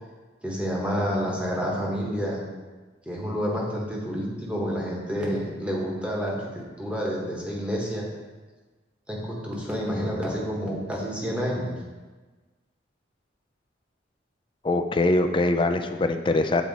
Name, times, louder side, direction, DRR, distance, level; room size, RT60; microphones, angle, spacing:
voice 1, 0.4-2.4 3.0-8.1 9.1-11.7, equal, 5° right, -3 dB, 1.1 m, -29 dB
voice 2, 14.6-16.6, left 2 dB, 25° left, 7 dB, 0.3 m, -23 dB
7.5 x 4.2 x 4.0 m, 1.3 s
head